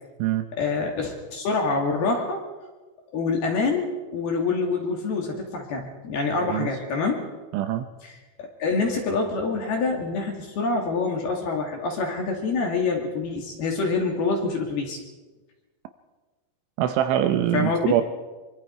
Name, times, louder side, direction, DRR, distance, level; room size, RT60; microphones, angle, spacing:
voice 1, 0.5-2.4 3.1-7.2 8.0-8.1 8.4-15.0 17.5-18.0, left 4 dB, 55° left, 1 dB, 4.0 m, -26 dB
voice 2, 7.5-7.9 16.8-18.0, right 11 dB, 80° right, 8 dB, 3.0 m, -23 dB
24.0 x 24.0 x 4.7 m, 1.2 s
omnidirectional pair, 6.0 m